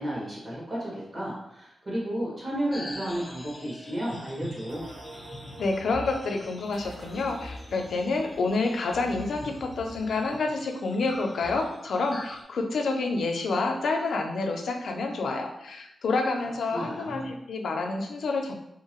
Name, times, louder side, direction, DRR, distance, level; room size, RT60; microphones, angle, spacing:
voice 1, 0.0-4.9 16.1-16.4 16.7-17.3, right 1 dB, 25° right, -7 dB, 1.2 m, -33 dB
sound 1, 2.7-12.4, left 1 dB, 15° left, 0.4 m, -44 dB
sound 2, 4.7-10.4, right 1 dB, 55° right, 0.3 m, -47 dB
voice 2, 5.6-18.5, left 3 dB, 75° left, 3 dB, 0.4 m, -28 dB
2.7 x 2.5 x 2.9 m, 0.82 s
wide cardioid pair, 175°, 0 cm